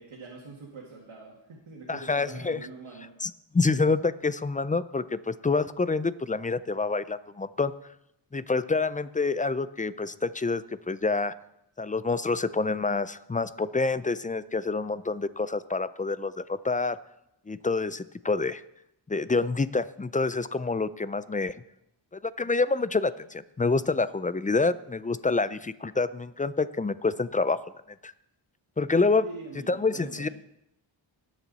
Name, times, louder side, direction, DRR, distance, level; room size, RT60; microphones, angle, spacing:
voice 1, 0.0-3.1 29.2-30.3, right 3 dB, 90° right, -3 dB, 2.1 m, -44 dB
voice 2, 1.9-2.7 3.2-7.7 8.3-11.3 11.8-17.0 17.5-18.6 19.1-21.6 22.1-27.6 28.0-28.1 28.8-29.3 29.7-30.3, left 3 dB, 20° left, 15 dB, 0.3 m, -27 dB
18.5 x 7.3 x 4.1 m, 0.81 s
wide cardioid pair, 105°, 48 cm